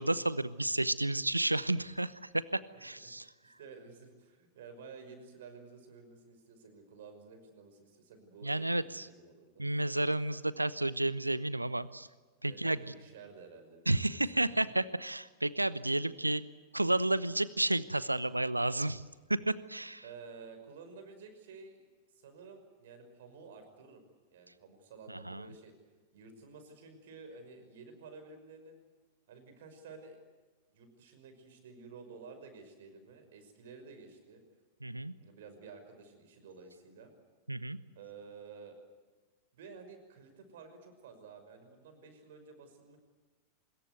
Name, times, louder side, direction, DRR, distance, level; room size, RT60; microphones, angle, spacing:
voice 1, 0.0-3.2 8.4-9.1 9.6-12.1 12.4-12.8 13.9-16.4 16.7-19.0 19.3-20.0 25.1-25.4 34.8-35.1 37.5-37.8, right 2 dB, 85° right, 18 dB, 0.9 m, -31 dB
voice 2, 3.0-9.6 12.4-14.6 20.0-21.8 22.1-24.0 24.3-25.7 26.1-28.8 29.3-30.2 30.7-34.4 35.1-37.1 37.9-38.8 39.5-43.0, right 4 dB, 55° right, 7 dB, 5.6 m, -52 dB
24.5 x 21.5 x 8.1 m, 1.3 s
figure-of-eight pair, 90°, 0 cm